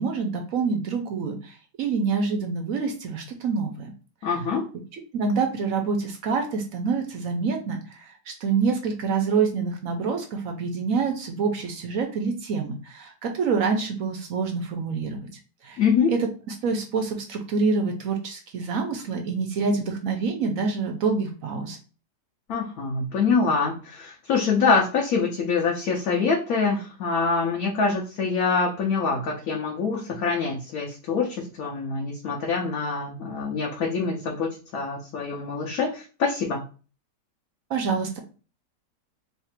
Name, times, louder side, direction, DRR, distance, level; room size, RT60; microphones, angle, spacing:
voice 1, 0.0-3.9 4.9-8.0 8.3-15.3 15.6-15.8 16.1-16.3 16.6-21.8 37.7-38.2, right 5 dB, 65° right, 3 dB, 1.0 m, -26 dB
voice 2, 4.2-4.7 15.8-16.1 22.5-36.6, left 5 dB, 65° left, -2 dB, 1.1 m, -25 dB
3.3 x 2.4 x 4.3 m, 0.36 s
omnidirectional pair, 1.8 m